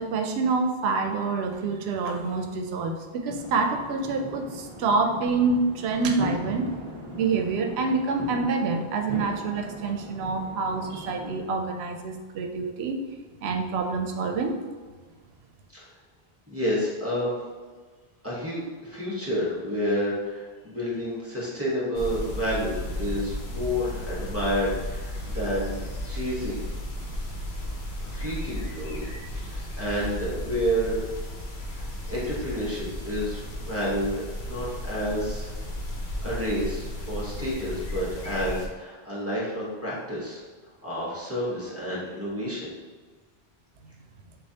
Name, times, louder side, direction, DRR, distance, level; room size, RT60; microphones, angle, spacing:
voice 1, 0.0-6.6 7.2-13.0 13.4-14.6, right 4 dB, 85° right, 5 dB, 0.8 m, -27 dB
sound 1, 3.3-11.5, left 1 dB, 35° right, 0.7 m, -38 dB
voice 2, 16.5-17.4 18.2-25.8 26.0-26.6 28.0-29.0 29.3-31.0 31.7-34.1 34.4-35.5 36.2-40.4 40.8-42.7, equal, 15° right, -7 dB, 1.1 m, -30 dB
sound 2, 21.9-38.7, left 1 dB, 85° left, 1.0 m, -34 dB
6.4 x 2.5 x 2.8 m, 1.4 s
omnidirectional pair, 1.0 m